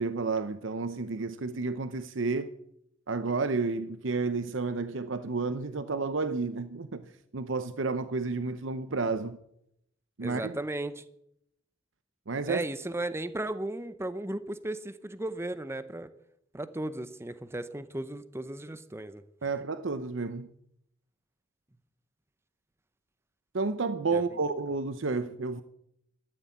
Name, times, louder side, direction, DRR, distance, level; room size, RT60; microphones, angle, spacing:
voice 1, 0.0-2.5 3.1-7.0 7.3-9.4 10.2-10.5 12.3-12.6 19.4-20.5 23.5-25.6, right 4 dB, 70° right, 0.8 m, -31 dB
voice 2, 10.2-11.0 12.5-16.1 16.5-19.2 24.1-24.2, right 1 dB, 15° right, 0.7 m, -35 dB
13.5 x 11.0 x 8.3 m
head